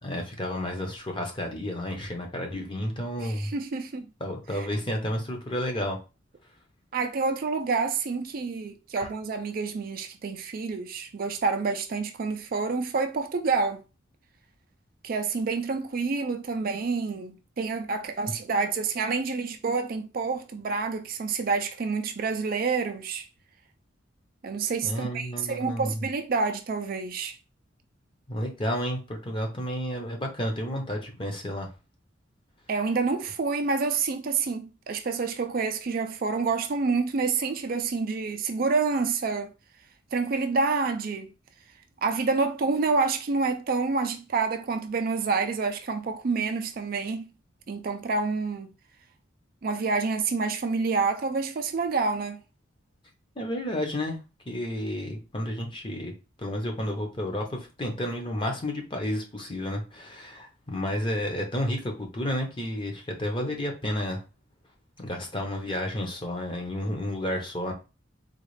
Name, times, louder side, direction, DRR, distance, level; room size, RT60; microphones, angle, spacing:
voice 1, 0.0-3.5 4.2-6.0 9.0-9.1 24.8-26.0 28.3-31.7 53.4-54.2 54.5-56.1 56.4-64.2 65.0-67.7, left 1 dB, 25° left, 0.8 m, -31 dB
voice 2, 3.2-4.0 4.5-4.7 6.9-13.8 15.0-23.2 24.4-27.4 32.7-39.5 40.1-41.3 42.0-47.3 47.7-48.7 49.6-52.4, right 4 dB, 45° right, 0.4 m, -28 dB
3.9 x 2.4 x 3.2 m
head